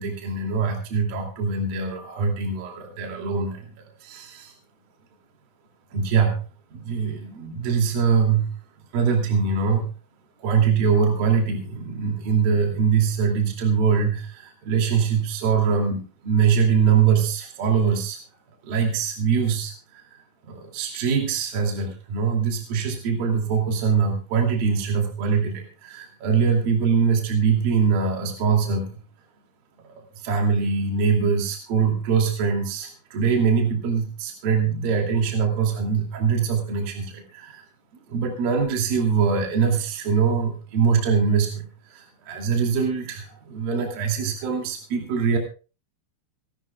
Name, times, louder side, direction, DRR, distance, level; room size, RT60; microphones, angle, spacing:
voice 1, 0.0-4.5 5.9-6.4 6.7-8.5 8.9-9.9 10.4-18.2 18.6-20.0 20.5-29.0 30.0-37.6 38.1-45.4, right 6 dB, 55° right, 1 dB, 4.2 m, -23 dB
27.0 x 13.0 x 2.3 m, 0.34 s
omnidirectional pair, 5.3 m